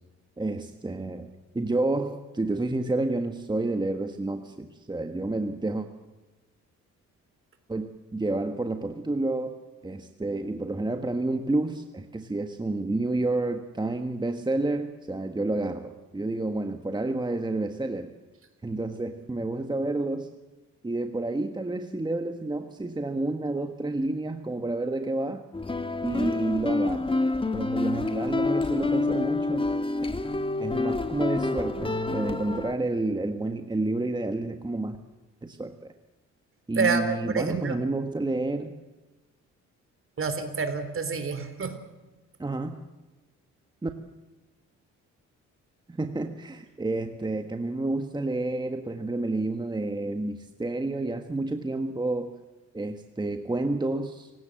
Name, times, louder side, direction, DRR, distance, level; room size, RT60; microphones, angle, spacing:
voice 1, 0.4-5.9 7.7-9.6 9.8-18.1 18.6-20.3 20.8-25.4 26.0-27.1 27.5-29.7 30.6-35.0 35.4-35.9 36.7-38.7 42.4-42.8 43.8-43.9 45.9-52.4 52.7-54.4, right 2 dB, 15° right, 6 dB, 1.5 m, -29 dB
sound 1, 25.5-32.7, left 3 dB, 15° left, 1.5 m, -28 dB
voice 2, 36.8-37.8 40.2-41.8, right 4 dB, 45° right, 9 dB, 4.0 m, -28 dB
29.0 x 17.5 x 7.7 m, 1.1 s
cardioid pair, 90°, 30 cm